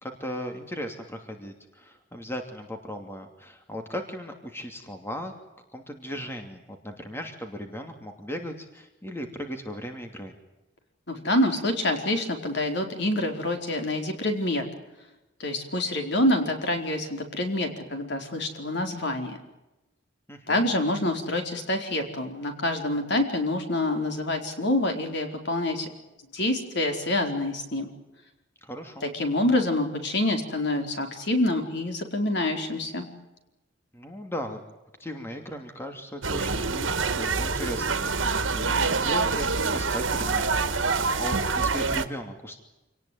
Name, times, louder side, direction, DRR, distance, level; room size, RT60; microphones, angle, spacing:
voice 1, 0.0-5.3 5.7-10.3 20.3-20.7 28.6-29.1 33.9-34.6 35.0-42.6, equal, 15° left, 5 dB, 2.8 m, -37 dB
voice 2, 11.1-14.6 15.4-19.4 20.5-25.9 26.3-27.9 29.0-33.1, left 1 dB, 60° left, 4 dB, 4.5 m, -26 dB
sound 1, 36.2-42.1, right 4 dB, 85° right, 1.9 m, -26 dB
27.5 x 19.0 x 9.5 m, 0.98 s
head